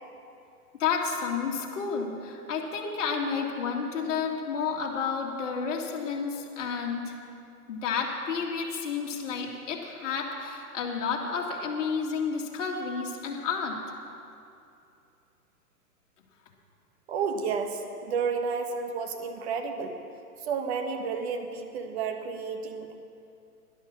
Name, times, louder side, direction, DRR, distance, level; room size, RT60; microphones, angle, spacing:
voice 1, 0.8-7.1 7.7-13.8, left 5 dB, 50° left, -1 dB, 2.3 m, -31 dB
voice 2, 17.1-20.0 20.4-22.9, right 5 dB, 45° right, 5 dB, 1.4 m, -31 dB
12.0 x 11.0 x 7.2 m, 2.6 s
hypercardioid pair, 135°, 46 cm